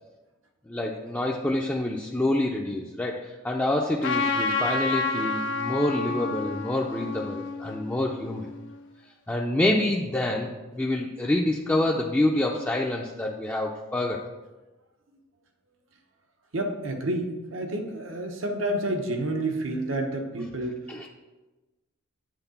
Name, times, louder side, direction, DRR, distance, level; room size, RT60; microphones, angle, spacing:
voice 1, 0.7-8.4 9.3-14.3 20.9-21.1, left 1 dB, 10° left, -2 dB, 0.4 m, -27 dB
Trumpet, 4.0-8.7, left 4 dB, 65° left, 0.7 m, -29 dB
voice 2, 16.5-20.8, right 1 dB, 80° right, 3 dB, 1.0 m, -29 dB
7.9 x 3.8 x 5.6 m, 1.1 s
head